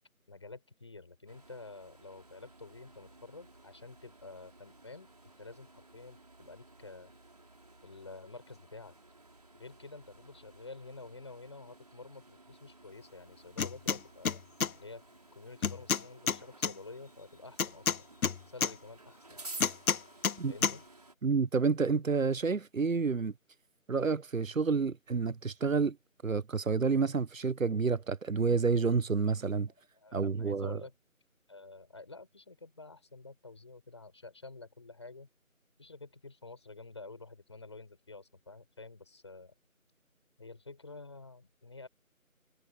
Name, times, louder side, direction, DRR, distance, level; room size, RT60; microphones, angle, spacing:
voice 1, 0.3-5.1 5.4-7.1 7.8-8.9 9.5-14.4 14.7-15.0 15.3-18.1 18.5-19.4 20.5-20.8 29.9-30.9 31.5-35.3 35.8-39.5 40.4-41.9, left 3 dB, 20° left, 5.7 m, -49 dB
sound 1, 1.3-21.2, right 2 dB, 30° right, 4.7 m, -54 dB
sound 2, 13.6-14.0 14.3-14.7 15.6-16.7 17.6-18.7 19.6-20.4 20.6-20.8, left 6 dB, 80° left, 0.6 m, -29 dB
voice 2, 21.2-23.3 23.9-26.0 26.2-29.7 30.1-30.8, right 5 dB, 70° right, 0.8 m, -29 dB
figure-of-eight pair, 170°, 42 cm